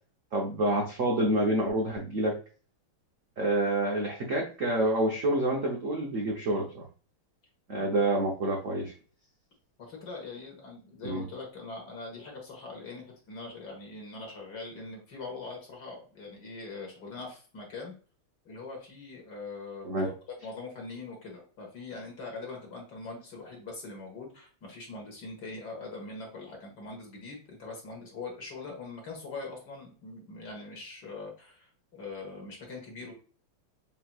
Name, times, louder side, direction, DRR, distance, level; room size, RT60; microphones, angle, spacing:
voice 1, 0.3-2.4 3.4-6.8 7.7-8.9 11.0-11.2 19.8-20.1, right 1 dB, 60° right, -1 dB, 0.8 m, -28 dB
voice 2, 9.8-17.9 18.5-20.1 20.4-33.1, left 3 dB, 55° left, 0 dB, 1.9 m, -42 dB
5.6 x 2.9 x 2.3 m, 0.38 s
omnidirectional pair, 2.3 m